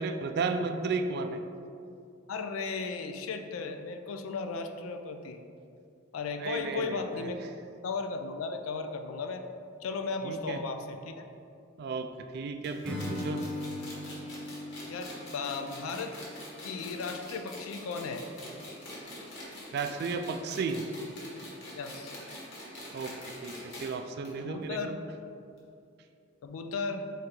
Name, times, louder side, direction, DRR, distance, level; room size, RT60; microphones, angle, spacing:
voice 1, 0.0-1.4 6.4-7.3 10.2-10.6 11.8-13.4 19.7-20.8 22.9-23.1 23.4-25.0, right 4 dB, 55° right, 7 dB, 0.3 m, -34 dB
voice 2, 2.3-5.4 6.1-7.5 7.8-9.5 9.8-11.3 14.8-16.2 16.6-18.3 21.8-22.1 24.4-25.0 26.4-27.1, left 4 dB, 80° left, 7 dB, 0.4 m, -35 dB
sound 1, 12.6-23.9 24.2-24.3 24.6-24.7 25.6-25.7, left 1 dB, 60° left, 1.2 m, -45 dB
Acoustic guitar / Strum, 12.8-16.7, left 1 dB, 5° left, 0.5 m, -39 dB
3.8 x 3.2 x 4.4 m, 2.5 s
head